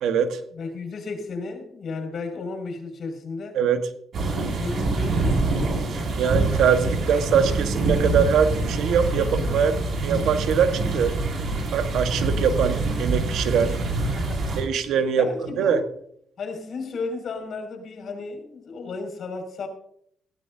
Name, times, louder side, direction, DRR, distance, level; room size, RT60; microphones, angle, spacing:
voice 1, 0.0-0.4 3.5-3.9 6.2-11.1 11.7-13.8 14.6-15.3 15.6-15.8, right 7 dB, 80° right, 8 dB, 1.4 m, -22 dB
voice 2, 0.5-3.6 4.3-6.0 14.1-14.6 15.2-15.8 16.4-19.7, left 3 dB, 55° left, 4 dB, 5.9 m, -34 dB
sound 1, 4.1-14.6, right 2 dB, 60° right, 5.9 m, -25 dB
18.5 x 16.0 x 2.8 m, 0.70 s
cardioid pair, 90°, 0 cm